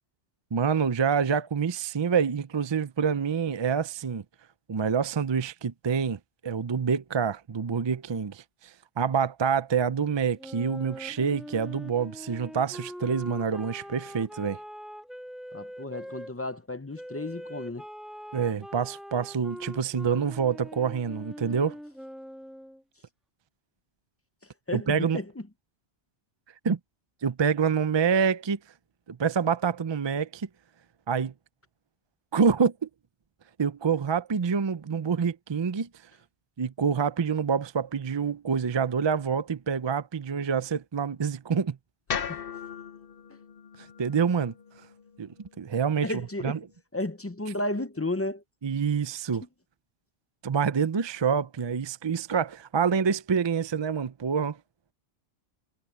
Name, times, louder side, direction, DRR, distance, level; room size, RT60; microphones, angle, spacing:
voice 1, 0.5-4.2 4.7-14.6 18.3-21.8 24.7-25.2 26.6-26.8 27.2-28.6 29.1-30.5 31.1-31.3 32.3-32.7 33.6-35.9 36.6-41.8 44.0-44.5 45.2-45.3 45.6-46.1 46.4-46.6 48.6-49.4 50.4-54.6, right 6 dB, 40° right, 0.3 m, -27 dB
Wind instrument woodwind instrument, 10.4-16.3 17.0-22.8, equal, ahead, 2.0 m, -43 dB
voice 2, 15.5-17.8 24.7-25.4 42.3-42.4 43.3-43.4 46.0-46.6 46.9-48.4, left 2 dB, 20° left, 0.5 m, -33 dB
sound 1, 42.1-46.3, left 7 dB, 55° left, 1.0 m, -38 dB
omnidirectional pair, 1.2 m